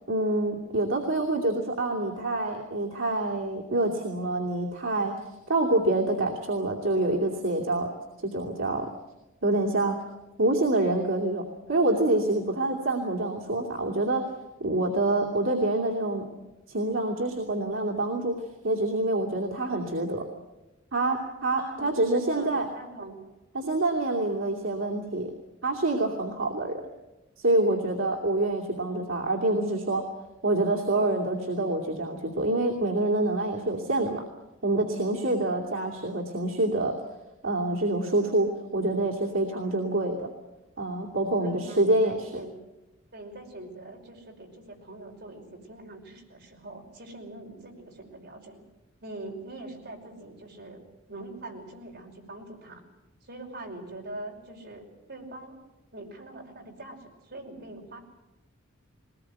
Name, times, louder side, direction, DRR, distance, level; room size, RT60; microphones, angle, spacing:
voice 1, 0.1-5.1 5.5-7.9 8.2-8.9 9.4-10.0 10.4-11.4 11.7-14.2 14.6-16.2 16.7-18.3 18.6-20.2 20.9-22.6 23.5-25.3 25.6-26.8 27.4-30.0 30.4-34.2 34.6-36.9 37.4-38.5 38.7-40.3 40.8-42.4, right 2 dB, 75° right, -2 dB, 2.7 m, -26 dB
voice 2, 21.6-22.0 22.3-23.2 41.4-42.5 43.1-48.6 49.0-50.8 51.1-52.8 53.2-55.6 55.9-58.0, right 2 dB, 55° right, 0 dB, 5.4 m, -43 dB
21.5 x 19.5 x 9.3 m, 1.0 s
head